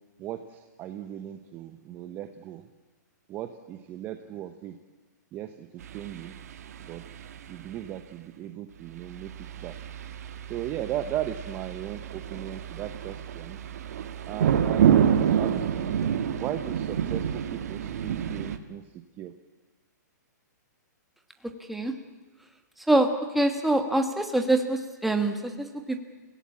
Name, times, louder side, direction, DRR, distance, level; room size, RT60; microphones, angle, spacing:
voice 1, 0.2-2.6 3.3-4.7 5.3-6.3 6.8-7.0 7.5-9.3 9.6-9.7 10.5-13.6 14.3-15.9 16.4-18.8 19.2-19.3, right 11 dB, 20° right, 8 dB, 0.8 m, -37 dB
sound 1, 5.8-7.7 9.0-18.6, right 9 dB, 55° right, 1.7 m, -28 dB
voice 2, 23.3-26.0, right 2 dB, ahead, 5 dB, 1.5 m, -24 dB
27.5 x 17.0 x 8.6 m, 1.3 s
hypercardioid pair, 165°, 10 cm